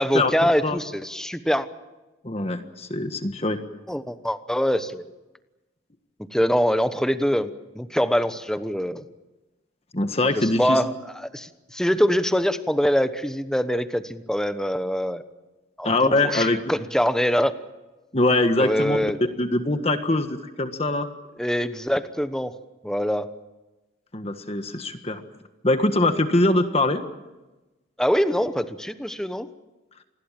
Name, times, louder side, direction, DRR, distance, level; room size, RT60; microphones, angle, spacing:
voice 1, 0.0-1.7 3.9-5.0 6.3-9.0 10.3-10.9 11.3-15.2 15.8-17.5 18.6-19.2 21.4-22.5 22.8-23.3 28.0-29.5, equal, 5° left, 10 dB, 1.1 m, -24 dB
voice 2, 2.2-3.6 9.9-10.8 15.8-16.7 18.1-19.0 19.4-21.1 24.1-25.2 25.6-27.0, left 2 dB, 30° left, 8 dB, 1.5 m, -22 dB
28.0 x 20.5 x 7.6 m, 1.1 s
head